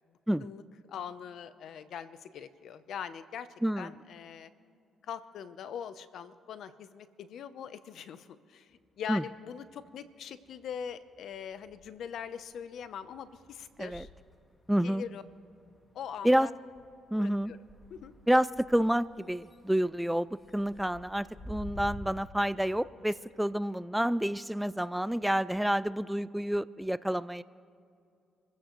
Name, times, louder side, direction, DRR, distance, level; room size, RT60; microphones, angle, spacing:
voice 1, 0.9-3.5 3.7-4.5 5.0-14.1 14.8-15.2 15.9-16.5 17.2-17.6 17.9-18.1, left 8 dB, 70° left, 13 dB, 0.7 m, -42 dB
sound 1, 8.7-10.0 10.3-22.0, left 1 dB, 20° left, 1.8 m, -51 dB
voice 2, 14.7-15.0 16.2-16.5 17.1-17.5 18.3-27.4, equal, 5° right, 17 dB, 0.3 m, -29 dB
27.5 x 15.0 x 3.1 m, 2.5 s
cardioid pair, 90°, 0 cm